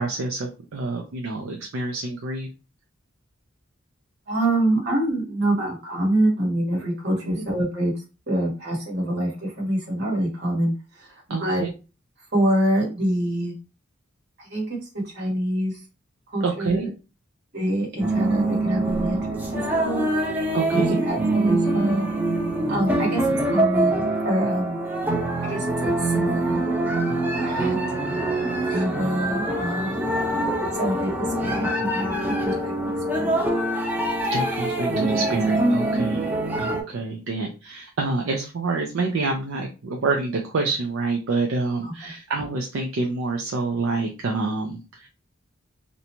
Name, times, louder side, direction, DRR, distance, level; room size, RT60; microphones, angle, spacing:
voice 1, 0.0-2.5 11.3-11.7 16.4-16.9 20.5-21.0 34.3-45.1, right 3 dB, 70° right, 2 dB, 0.5 m, -27 dB
voice 2, 4.3-7.9 8.3-11.6 12.3-13.5 14.4-14.7 14.9-15.8 16.3-16.9 17.5-20.1 20.7-22.1 22.7-24.8 25.5-26.6 27.4-27.8 28.7-30.0 30.7-31.1 31.4-33.4 35.1-35.3 41.8-41.9, right 1 dB, 55° right, -3 dB, 1.3 m, -26 dB
sound 1, 18.0-36.8, right 1 dB, 10° right, 0.5 m, -24 dB
2.6 x 2.2 x 2.9 m, 0.32 s
head